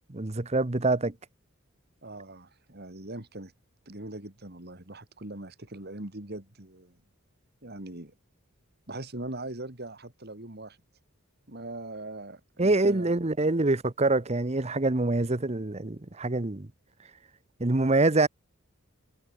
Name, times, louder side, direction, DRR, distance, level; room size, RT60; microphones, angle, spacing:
voice 1, 0.1-1.1 12.6-16.7 17.6-18.3, right 2 dB, 30° right, 1.0 m, -25 dB
voice 2, 2.0-3.5 3.9-7.0 7.6-8.1 8.9-10.8 11.5-13.1, right 2 dB, 50° right, 2.9 m, -41 dB
head